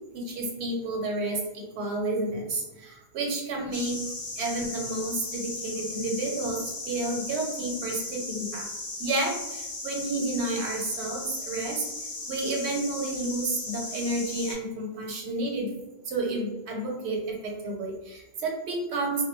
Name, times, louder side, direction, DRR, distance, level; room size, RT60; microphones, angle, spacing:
voice 1, 0.1-4.0 4.4-8.7 9.0-11.8 12.3-15.7 16.1-19.2, right 2 dB, 85° right, 0 dB, 0.9 m, -31 dB
sound 1, 3.7-14.5, left 2 dB, 30° left, 0.4 m, -37 dB
2.1 x 2.1 x 3.0 m, 1.0 s
omnidirectional pair, 1.1 m